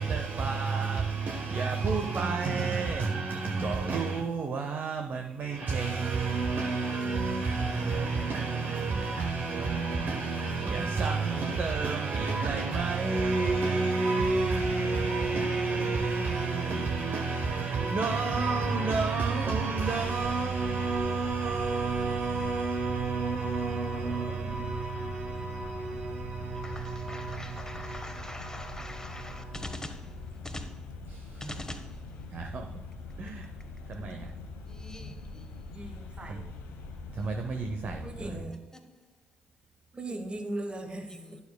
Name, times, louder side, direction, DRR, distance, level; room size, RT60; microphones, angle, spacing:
voice 1, 0.0-29.8 31.1-31.4 32.3-32.7 33.2-33.5 33.9-34.3 36.3-36.4 37.1-38.5, right 4 dB, 45° right, 0.7 m, -30 dB
sound 1, 20.0-38.4, left 3 dB, 70° left, 0.9 m, -43 dB
voice 2, 26.5-30.1 30.4-30.7 31.4-31.9 34.6-35.5 41.1-41.4, left 1 dB, 15° left, 1.2 m, -43 dB
voice 3, 35.7-36.5 38.0-38.7 39.9-41.4, right 1 dB, 25° right, 1.0 m, -39 dB
11.0 x 6.7 x 2.2 m
hypercardioid pair, 45°, 4 cm